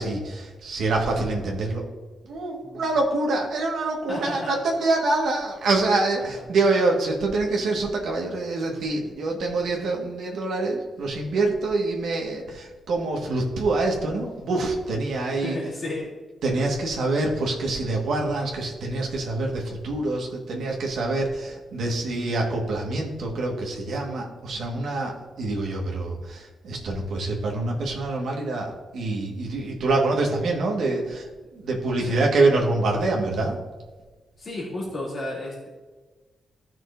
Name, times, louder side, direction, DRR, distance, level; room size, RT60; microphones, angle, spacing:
voice 1, 0.0-1.8 2.2-15.6 16.4-33.6, right 2 dB, 80° right, 0 dB, 1.6 m, -25 dB
voice 2, 4.1-4.5 6.3-6.4 15.4-16.1 25.0-25.2 32.0-32.2 34.4-35.7, left 1 dB, 30° left, -6 dB, 2.7 m, -33 dB
15.0 x 6.2 x 2.6 m, 1.3 s
wide cardioid pair, 180°, 0 cm